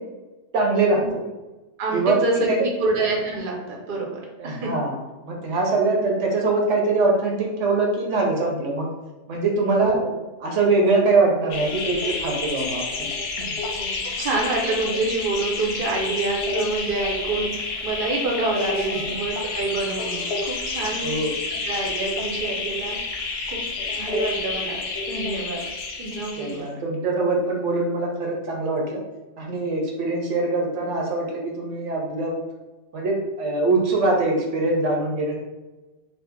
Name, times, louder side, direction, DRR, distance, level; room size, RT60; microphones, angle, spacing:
voice 1, 0.5-1.2 1.9-2.2 2.5-2.6 4.4-4.9 5.2-8.9 9.3-10.0 10.4-12.8 18.9-19.2 21.0-21.3 26.4-29.0 29.4-32.4 32.9-35.4, right 3 dB, 75° right, -1 dB, 1.0 m, -23 dB
voice 2, 1.8-4.7 5.5-5.6 9.8-10.1 13.7-21.2 21.6-23.6 23.9-24.8 25.1-25.6 26.0-26.8, right 3 dB, 55° right, -1 dB, 0.7 m, -27 dB
sound 1, 11.5-26.6, left 3 dB, 65° left, 0.8 m, -29 dB
2.7 x 2.4 x 3.5 m, 1.1 s
omnidirectional pair, 1.3 m